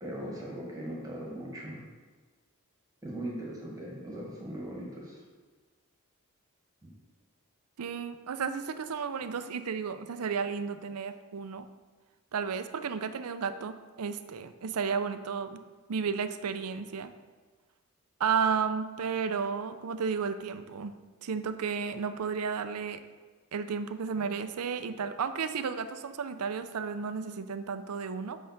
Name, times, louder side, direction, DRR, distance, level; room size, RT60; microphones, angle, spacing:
voice 1, 0.0-1.8 3.0-5.2, right 1 dB, 15° right, -3 dB, 1.5 m, -39 dB
voice 2, 7.8-11.7 12.3-15.6 15.9-17.1 18.2-20.9 21.2-23.0 23.5-28.4, right 6 dB, 85° right, 10 dB, 0.5 m, -33 dB
5.7 x 5.6 x 6.5 m, 1.4 s
head